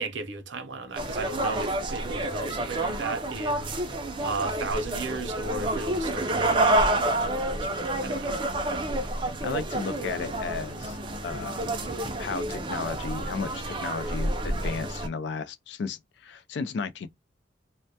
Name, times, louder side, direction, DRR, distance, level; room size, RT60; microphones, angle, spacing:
voice 1, 0.0-3.7 4.2-8.4, right 3 dB, 75° right, 0.6 m, -35 dB
sound 1, 0.9-15.1, right 1 dB, 25° right, 0.4 m, -29 dB
voice 2, 9.4-11.0 11.2-11.7 12.2-17.1, left 5 dB, 65° left, 0.3 m, -34 dB
2.1 x 2.1 x 2.7 m
head